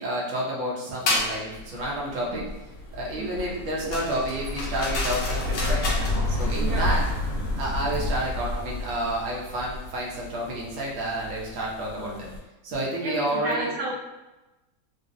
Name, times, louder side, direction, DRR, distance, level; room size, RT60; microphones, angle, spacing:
voice 1, 0.0-2.4 2.9-7.0 7.5-12.3 12.6-13.7, right 1 dB, 55° right, -4 dB, 1.0 m, -30 dB
sound 1, 1.1-1.3 3.9-6.2, left 2 dB, 85° left, 1.3 m, -29 dB
sound 2, 1.2-12.4, left 1 dB, 55° left, 1.0 m, -31 dB
voice 2, 3.2-3.5 6.6-7.0 12.0-12.3 13.0-13.9, right 2 dB, 80° right, -2 dB, 1.3 m, -33 dB
3.9 x 2.0 x 2.5 m, 1.0 s
omnidirectional pair, 1.9 m